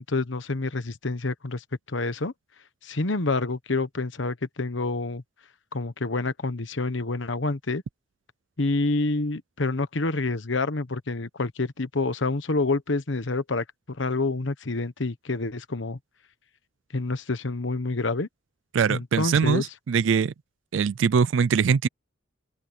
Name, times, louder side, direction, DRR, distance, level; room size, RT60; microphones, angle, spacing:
voice 1, 0.1-2.3 2.8-5.2 5.7-7.8 8.6-16.0 16.9-18.3 18.9-19.7, left 3 dB, 70° left, 1.1 m, -28 dB
voice 2, 18.7-20.3 20.7-21.9, right 6 dB, 75° right, 0.4 m, -22 dB
open air
head